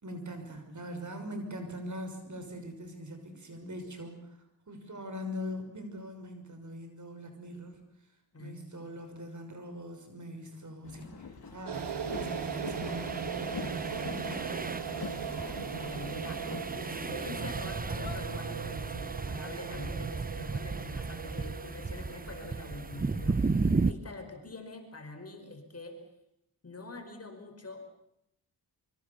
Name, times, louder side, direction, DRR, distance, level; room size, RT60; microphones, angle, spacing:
voice 1, 0.0-4.4 4.7-7.8 8.4-14.5 14.9-15.6, equal, 45° right, 6 dB, 6.1 m, -42 dB
Boat Water vehicle, 10.8-22.2, left 5 dB, 65° left, 3.4 m, -46 dB
sound 1, 11.7-23.9, right 4 dB, 20° right, 0.8 m, -35 dB
sound 2, 11.7-23.9, right 8 dB, 75° right, 2.0 m, -40 dB
voice 2, 15.8-26.0 26.6-27.8, left 2 dB, 35° left, 5 dB, 5.5 m, -45 dB
25.0 x 24.5 x 7.2 m, 0.81 s
cardioid pair, 70°, 41 cm